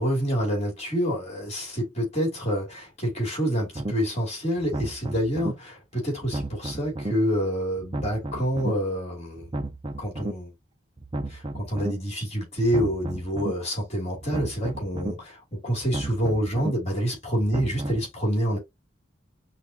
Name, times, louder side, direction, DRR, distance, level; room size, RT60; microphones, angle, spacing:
voice 1, 0.0-9.5 10.0-10.5 11.3-18.6, equal, 35° left, 2.6 m, -27 dB
sound 1, 3.7-3.9 4.6-5.5 6.2-7.1 7.8-8.7 9.4-10.3 11.0-11.9 12.6-13.5 14.2-15.1 15.8-16.7 17.4-18.1, right 1 dB, 25° right, 0.5 m, -33 dB
5.7 x 2.5 x 2.8 m
head